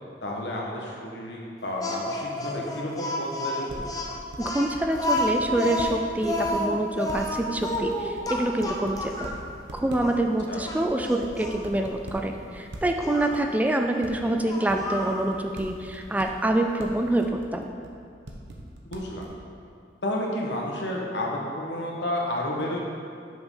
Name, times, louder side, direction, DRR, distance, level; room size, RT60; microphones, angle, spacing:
voice 1, 0.2-3.9 10.5-10.6 18.9-19.3 20.0-22.8, left 1 dB, 75° left, -2 dB, 1.3 m, -31 dB
Speech, 1.8-9.4 10.0-10.1 10.6-11.6 13.0-13.3 14.5-15.2, left 1 dB, 20° left, 0.7 m, -30 dB
sound 1, 3.7-5.9 6.2-6.5 7.1-9.3 9.6-10.2 10.4-12.1 12.7-12.9 13.3-13.4 14.0-14.1 14.7-16.4 16.8-16.9 17.2-17.9 18.3-19.3, right 1 dB, 80° right, 0.9 m, -41 dB
voice 2, 4.4-9.3 9.7-17.3 17.5-17.7, right 1 dB, 10° right, 4 dB, 0.3 m, -26 dB
6.1 x 5.1 x 5.5 m, 2.4 s
head